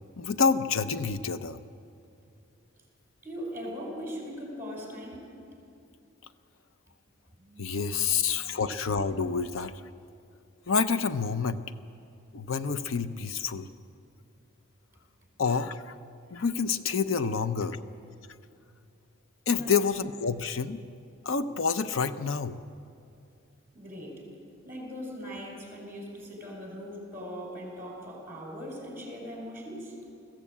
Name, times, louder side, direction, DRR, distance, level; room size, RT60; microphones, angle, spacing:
voice 1, 0.2-1.6 7.6-9.7 10.7-11.6 12.3-13.7 15.4-15.9 16.3-17.8 19.5-20.8 21.2-22.6, left 5 dB, 90° left, 12 dB, 0.7 m, -28 dB
voice 2, 3.2-5.2 5.5-5.6 7.4-7.7 8.0-8.6 19.5-19.7 23.7-24.2 24.6-30.0, equal, 15° right, 0 dB, 5.1 m, -40 dB
21.0 x 15.0 x 8.5 m, 2.5 s
head